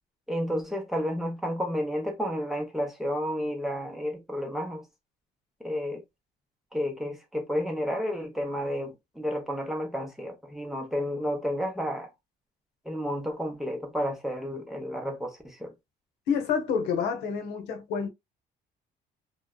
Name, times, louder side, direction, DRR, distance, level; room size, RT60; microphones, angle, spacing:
voice 1, 0.3-4.8 5.6-6.0 6.7-12.1 12.9-15.7, equal, ahead, 0.8 m, -31 dB
voice 2, 16.3-18.1, left 6 dB, 85° left, 0.8 m, -28 dB
2.6 x 2.2 x 2.2 m
cardioid pair, 110°, 17 cm